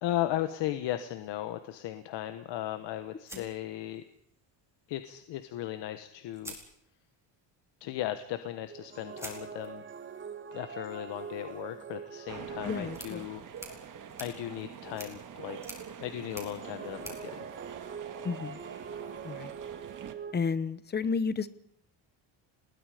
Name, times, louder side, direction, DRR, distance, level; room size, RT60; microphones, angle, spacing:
voice 1, 0.0-4.0 4.9-6.5 7.8-9.8 10.5-13.4 14.2-15.6 16.0-17.5, left 13 dB, 70° left, 10 dB, 1.4 m, -36 dB
sound 1, 3.3-4.4 5.7-5.8 6.3-7.3 9.2-18.4, right 1 dB, 5° right, 4.6 m, -50 dB
sound 2, 8.7-13.8 16.3-20.3, right 7 dB, 25° right, 1.6 m, -44 dB
sound 3, 12.3-20.1, right 8 dB, 45° right, 2.2 m, -45 dB
voice 2, 12.6-13.3 18.2-18.6 19.2-19.5 20.3-21.5, left 5 dB, 20° left, 16 dB, 1.0 m, -32 dB
30.0 x 21.0 x 5.2 m, 0.70 s
cardioid pair, 150°, 44 cm